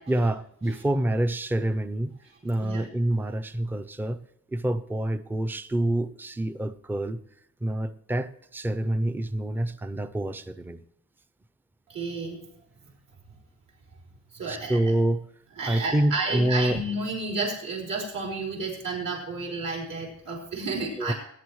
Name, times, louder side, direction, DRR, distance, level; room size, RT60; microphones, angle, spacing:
voice 1, 0.1-2.2 2.4-4.2 4.5-7.2 7.6-10.8 14.5-15.3 15.6-16.8 21.0-21.1, right 1 dB, 5° right, 10 dB, 0.5 m, -27 dB
voice 2, 11.9-12.5 14.3-14.9 15.6-21.1, right 3 dB, 75° right, -2 dB, 5.0 m, -31 dB
20.5 x 11.0 x 3.1 m, 0.74 s
wide cardioid pair, 150°, 33 cm